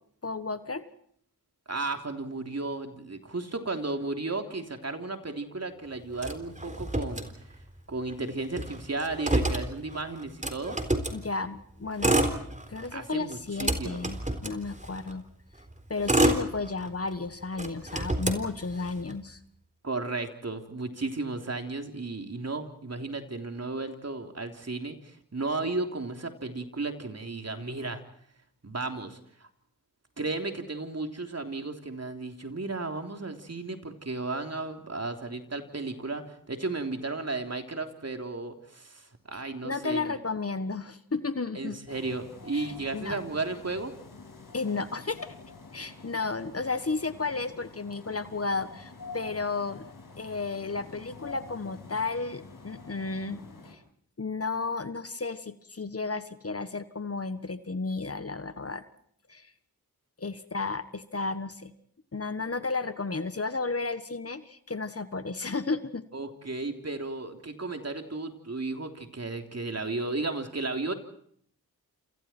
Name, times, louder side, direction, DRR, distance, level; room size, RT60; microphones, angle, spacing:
voice 1, 0.2-0.8 11.1-12.2 12.7-15.3 15.9-19.4 39.3-41.8 42.5-43.2 44.5-45.3 45.7-49.9 50.2-53.8 54.2-58.8 59.3-59.5 60.2-61.7 62.1-66.1, left 3 dB, 35° left, 12 dB, 1.5 m, -33 dB
voice 2, 1.7-7.3 7.9-10.8 12.9-14.0 19.8-28.0 28.6-29.5 30.2-40.2 41.5-43.9 66.1-70.9, right 3 dB, 40° right, 5 dB, 3.4 m, -34 dB
Motor vehicle (road), 6.2-7.8 8.1-8.2 8.4-11.2 11.8-12.9 13.3-15.1 15.7-17.1 17.5-19.1, right 1 dB, 20° right, 3.8 m, -28 dB
sound 1, 41.9-53.7, left 3 dB, 55° left, 6.6 m, -48 dB
28.5 x 28.0 x 4.5 m, 0.63 s
cardioid pair, 45°, 38 cm